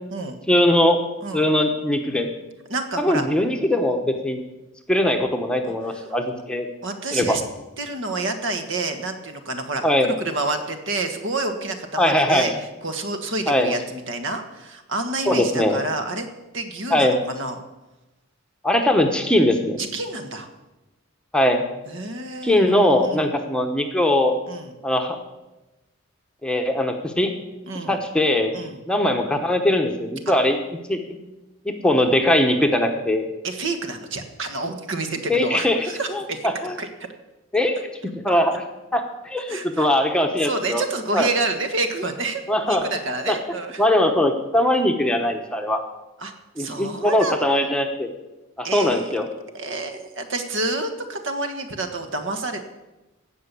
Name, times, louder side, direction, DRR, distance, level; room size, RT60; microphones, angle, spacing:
voice 1, 0.5-1.0 1.3-2.3 3.0-4.4 4.9-6.7 7.1-7.4 9.8-10.1 12.0-12.6 13.5-13.7 15.3-15.8 16.9-17.2 18.6-19.8 21.3-21.6 22.4-24.3 24.8-25.2 26.4-27.3 27.9-28.5 28.9-30.6 30.9-31.0 31.6-33.2 35.3-36.8 37.5-37.8 38.2-38.6 38.9-40.8 41.1-41.3 42.5-42.9 43.3-43.4 43.8-45.8 46.6-48.1 48.6-49.3, left 1 dB, 5° left, 3 dB, 1.0 m, -20 dB
voice 2, 2.7-3.2 5.6-6.0 6.8-7.4 7.8-12.5 12.8-16.3 16.5-17.6 19.8-20.5 21.9-22.7 23.0-23.3 24.5-24.7 27.7-28.0 28.5-28.8 33.4-36.5 36.8-36.9 39.5-39.9 40.4-43.8 46.2-47.4 48.6-49.1 49.5-52.6, right 2 dB, 60° right, 7 dB, 1.5 m, -28 dB
16.5 x 5.8 x 8.3 m, 1.0 s
head